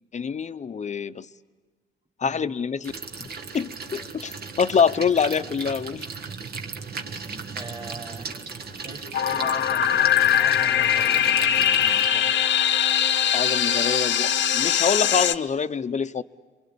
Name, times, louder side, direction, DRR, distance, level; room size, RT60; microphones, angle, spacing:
voice 1, 0.1-1.3 2.2-2.9 3.2-6.1 13.3-16.2, left 6 dB, 35° left, 11 dB, 0.8 m, -25 dB
sound 1, 2.8-12.1, right 5 dB, 55° right, 1.6 m, -36 dB
voice 2, 7.5-8.3 8.8-12.3, right 3 dB, 25° right, 0 dB, 3.4 m, -41 dB
sound 2, 9.1-15.3, left 10 dB, 70° left, 1.0 m, -21 dB
28.5 x 23.5 x 8.6 m, 1.3 s
cardioid pair, 90°, 20 cm